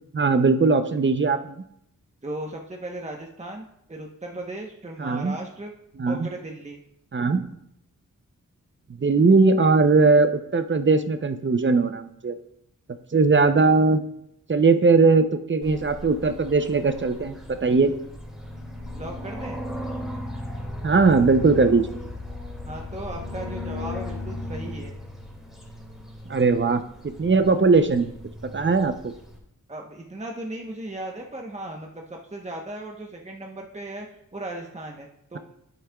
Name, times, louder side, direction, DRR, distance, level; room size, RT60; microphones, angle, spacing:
voice 1, 0.1-1.6 5.0-5.4 6.0-6.3 7.1-7.6 9.0-12.3 13.1-14.0 14.5-17.4 17.6-17.9 20.8-22.0 26.3-28.1 28.4-29.1, right 4 dB, 35° right, 9 dB, 0.6 m, -19 dB
voice 2, 2.2-5.7 6.1-6.8 18.9-19.6 22.6-24.9 29.7-34.1 34.3-35.4, right 1 dB, 20° right, 0 dB, 1.0 m, -36 dB
sound 1, 15.6-29.4, left 1 dB, ahead, 2.2 m, -37 dB
9.9 x 8.8 x 2.3 m, 0.76 s
cardioid pair, 65°, 32 cm